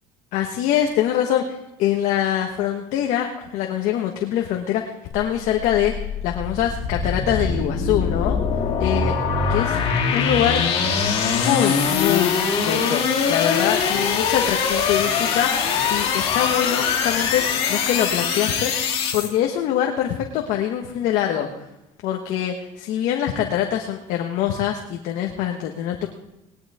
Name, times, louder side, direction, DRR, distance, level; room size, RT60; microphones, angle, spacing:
voice 1, 0.3-8.4 8.8-9.2 9.5-9.8 10.1-10.6 11.3-12.4 12.6-15.5 15.9-18.7 19.1-21.5 22.0-26.1, left 10 dB, 65° left, 2 dB, 1.5 m, -24 dB
sound 1, 5.1-19.3, left 6 dB, 50° left, 2.9 m, -22 dB
19.0 x 11.5 x 3.7 m, 0.93 s
cardioid pair, 120°, 13 cm